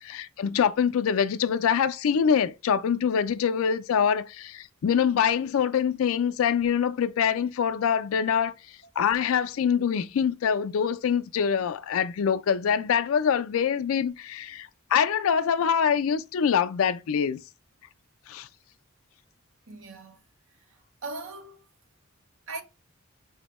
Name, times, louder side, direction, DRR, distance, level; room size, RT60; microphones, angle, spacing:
voice 1, 0.0-8.5 9.0-17.4 18.3-18.5, left 7 dB, 85° left, 0.4 m, -24 dB
voice 2, 19.7-20.2 20.7-21.6 22.5-22.6, right 3 dB, 80° right, 0.6 m, -39 dB
4.3 x 2.1 x 2.9 m
head